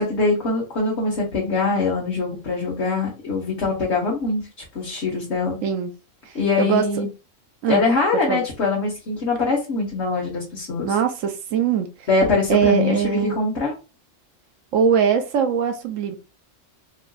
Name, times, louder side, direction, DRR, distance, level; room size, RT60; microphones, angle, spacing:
voice 1, 0.0-4.4 4.7-5.6 6.3-7.1 7.7-10.9 12.1-13.7, left 3 dB, 60° left, 1.4 m, -23 dB
voice 2, 10.8-12.1 12.5-13.4 14.7-16.2, right 7 dB, 80° right, 1.0 m, -21 dB
4.8 x 2.5 x 2.3 m
omnidirectional pair, 1.3 m